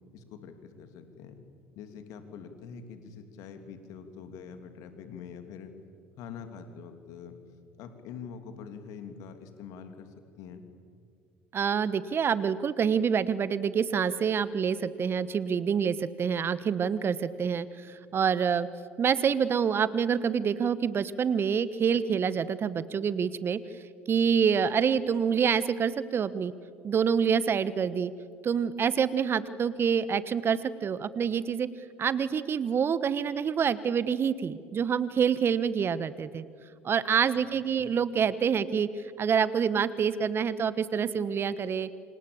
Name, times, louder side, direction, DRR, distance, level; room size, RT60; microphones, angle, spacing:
voice 1, 0.1-1.4 1.7-5.7 6.1-7.4 7.8-10.7 37.3-37.5 37.8-37.9, left 6 dB, 60° left, 8 dB, 3.1 m, -45 dB
voice 2, 11.5-18.7 19.0-23.6 24.1-26.5 26.8-28.1 28.4-31.7 32.0-36.4 36.8-41.9, right 7 dB, 40° right, 16 dB, 1.2 m, -27 dB
29.5 x 27.0 x 7.2 m, 2.2 s
hypercardioid pair, 65°, 6 cm